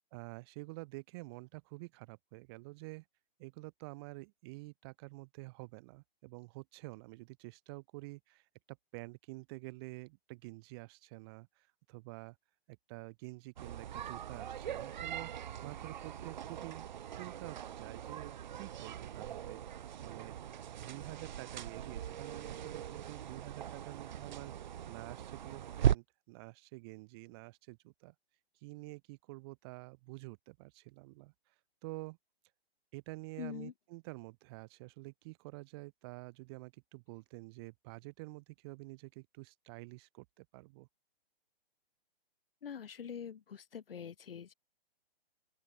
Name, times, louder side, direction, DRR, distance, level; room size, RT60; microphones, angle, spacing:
voice 1, 0.1-3.0 3.4-12.4 12.7-15.3 15.6-16.8 17.1-19.6 20.0-20.4 20.8-28.1 28.6-31.5 31.8-32.2 32.9-40.9, right 25 dB, 25° right, 6.1 m, -49 dB
sound 1, 13.6-25.9, right 10 dB, 50° right, 0.6 m, -39 dB
voice 2, 33.4-33.7 42.6-44.5, left 7 dB, 65° left, 6.8 m, -44 dB
open air
hypercardioid pair, 170°, 30 cm